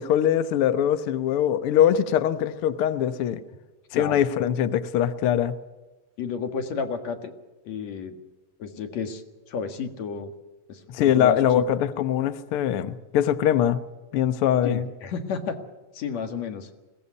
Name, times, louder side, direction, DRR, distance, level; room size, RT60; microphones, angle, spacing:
voice 1, 0.0-3.4 3.9-5.6 10.9-13.8 14.1-14.9, left 10 dB, 85° left, 12 dB, 1.2 m, -22 dB
voice 2, 3.9-4.3 6.2-7.3 7.6-8.1 8.6-9.2 9.5-10.3 10.7-11.4 14.6-15.6 15.9-16.7, left 6 dB, 60° left, 7 dB, 2.7 m, -31 dB
21.0 x 17.5 x 8.3 m, 1.1 s
omnidirectional pair, 3.9 m